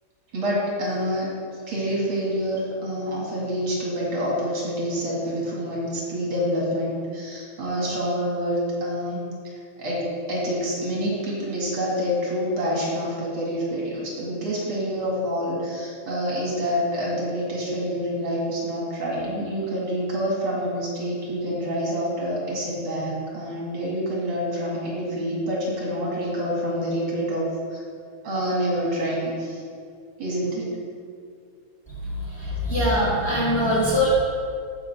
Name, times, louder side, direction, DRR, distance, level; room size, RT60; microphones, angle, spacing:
voice 1, 0.3-1.3 1.7-27.8 28.2-29.6 30.2-30.7, equal, 75° right, -5 dB, 3.0 m, -27 dB
voice 2, 32.4-34.1, left 1 dB, 10° left, -8 dB, 2.1 m, -22 dB
15.0 x 5.4 x 3.5 m, 2.2 s
omnidirectional pair, 2.3 m